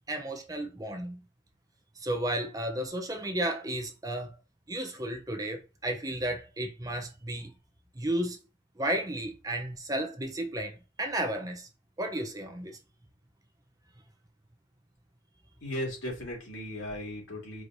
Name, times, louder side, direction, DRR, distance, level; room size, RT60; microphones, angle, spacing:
voice 1, 0.1-1.2 2.0-4.3 4.7-7.5 8.0-8.4 8.8-11.7 12.0-12.7, right 1 dB, 20° right, 0.6 m, -33 dB
voice 2, 15.6-17.6, left 1 dB, 90° left, 2.3 m, -36 dB
4.7 x 3.0 x 2.6 m
head